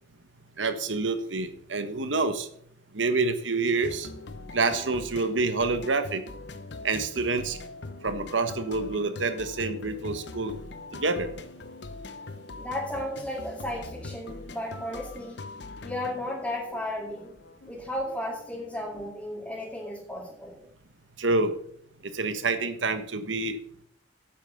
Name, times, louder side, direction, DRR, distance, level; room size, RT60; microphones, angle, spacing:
voice 1, 0.6-2.5 2.9-4.1 4.5-6.2 6.8-7.6 8.0-10.5 10.9-11.3 21.2-21.5 22.1-23.6, right 3 dB, 80° right, 10 dB, 1.4 m, -27 dB
sound 1, 3.8-19.1, left 3 dB, 60° left, 0.9 m, -42 dB
voice 2, 12.6-15.4 15.8-17.3 17.7-20.6, left 1 dB, 5° left, -4 dB, 2.4 m, -34 dB
8.9 x 8.5 x 6.7 m, 0.65 s
head